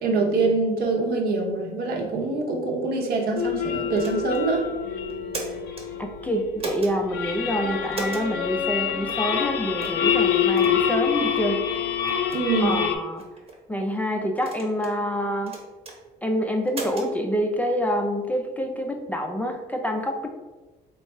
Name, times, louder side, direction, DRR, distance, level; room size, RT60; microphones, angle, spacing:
voice 1, 0.0-4.7 12.3-12.8, right 3 dB, 65° right, 1 dB, 0.8 m, -24 dB
sound 1, 3.4-13.0, left 8 dB, 75° left, 0.5 m, -26 dB
sound 2, 4.0-4.4 5.1-5.9 6.6-6.9 7.9-8.3 9.1-9.2 9.8-10.0 10.6-10.8 11.4-11.5 12.1-12.4 13.2-13.6 14.4-15.0 15.5-16.0 16.7-17.1, right 3 dB, 35° right, 0.9 m, -35 dB
voice 2, 6.0-11.6 12.6-13.2 13.7-15.6 16.2-20.3, equal, 10° left, 2 dB, 0.3 m, -27 dB
3.4 x 2.3 x 4.1 m, 1.2 s
cardioid pair, 110°, 17 cm